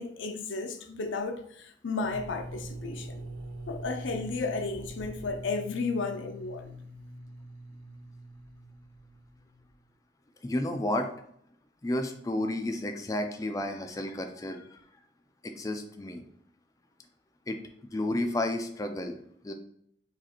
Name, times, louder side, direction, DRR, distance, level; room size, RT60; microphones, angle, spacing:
voice 1, 0.0-3.2 3.7-6.7, left 3 dB, 85° left, 0.6 m, -33 dB
sound 1, 2.0-9.7, right 1 dB, 75° right, 0.8 m, -43 dB
voice 2, 10.4-11.1 11.8-14.8 15.4-16.2 17.5-17.6 17.9-19.2 19.4-19.5, left 1 dB, 20° left, 0.4 m, -31 dB
4.9 x 2.5 x 4.3 m
head